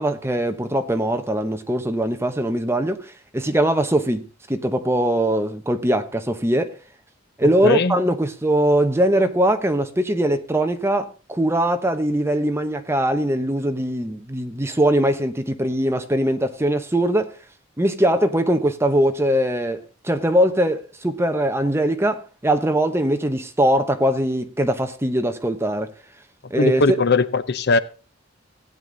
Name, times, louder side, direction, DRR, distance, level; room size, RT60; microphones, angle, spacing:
voice 1, 0.0-6.8 7.4-17.3 17.8-25.9 26.5-26.8, right 1 dB, 15° right, 1.0 m, -21 dB
voice 2, 7.6-8.0 26.6-27.8, left 3 dB, 60° left, 0.7 m, -19 dB
16.0 x 9.2 x 3.9 m
head